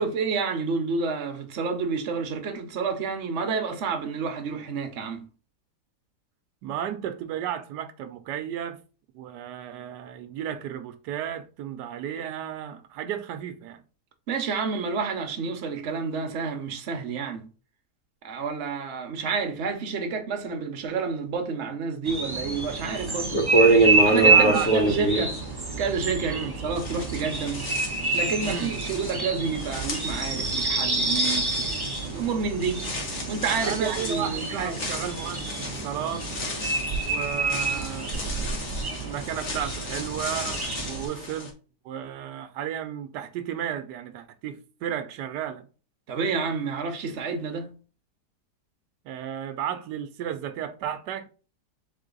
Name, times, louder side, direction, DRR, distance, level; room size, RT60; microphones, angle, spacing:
voice 1, 0.0-5.3 14.3-17.5 18.2-23.4 24.0-25.4 25.8-27.6 28.1-31.7 32.0-32.9 33.3-34.8 46.1-47.8, right 5 dB, 50° right, 1.1 m, -29 dB
voice 2, 6.6-8.8 9.1-13.8 24.2-24.7 26.2-26.5 28.4-28.8 33.6-36.3 36.9-41.5 41.8-45.6 49.0-51.3, right 10 dB, 90° right, 1.2 m, -33 dB
sound 1, 22.1-41.1, right 3 dB, 20° right, 0.6 m, -28 dB
sound 2, 22.8-22.9 23.3-26.4 26.7-41.5, right 2 dB, 55° left, 1.6 m, -28 dB
3.8 x 3.3 x 3.8 m
omnidirectional pair, 1.8 m